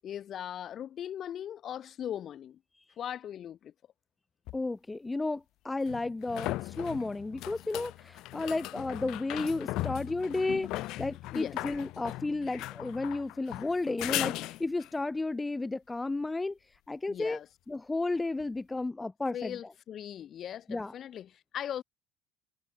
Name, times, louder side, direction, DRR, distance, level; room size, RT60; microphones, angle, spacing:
voice 1, 0.0-2.6 3.0-3.7 11.3-11.6 17.1-17.5 19.3-21.8, left 10 dB, 45° left, 7.9 m, -39 dB
sound 1, 4.5-4.6 5.9-15.0 18.4-18.5, left 18 dB, 65° left, 1.5 m, -38 dB
voice 2, 4.5-17.4 17.7-19.6 20.7-20.9, left 2 dB, 15° left, 1.6 m, -33 dB
cardioid pair, 115°, 0 cm